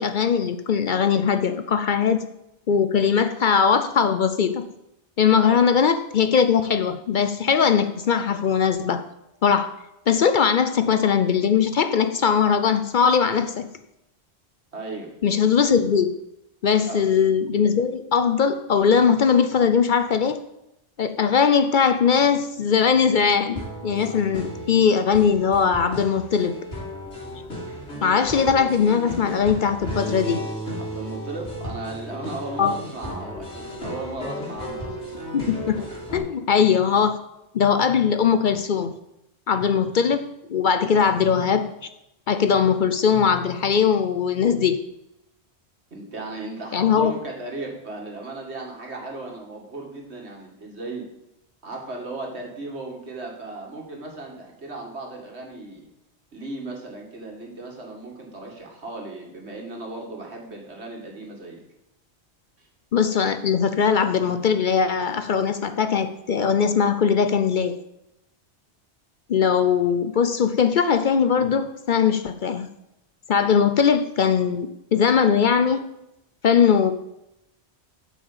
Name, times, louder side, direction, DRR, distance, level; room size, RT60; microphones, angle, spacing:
voice 1, 0.0-2.2 2.7-4.6 5.2-9.0 9.4-9.7 10.1-13.7 15.2-16.1 16.6-20.4 21.0-26.5 28.0-30.4 32.6-32.7 35.3-35.8 36.1-37.2 37.5-38.9 39.5-40.2 40.5-41.7 42.3-44.8 46.7-47.1 62.9-67.8 69.3-72.7 73.3-75.8 76.4-76.9, left 6 dB, 55° left, 9 dB, 0.7 m, -20 dB
voice 2, 14.7-15.1 16.8-17.0 30.8-35.2 45.9-51.0 51.6-55.9 56.3-61.6 62.6-62.7, right 2 dB, 75° right, 0 dB, 2.3 m, -36 dB
sound 1, 23.6-36.2, equal, 80° left, 3.1 m, -34 dB
7.6 x 6.2 x 7.2 m, 0.87 s
omnidirectional pair, 1.1 m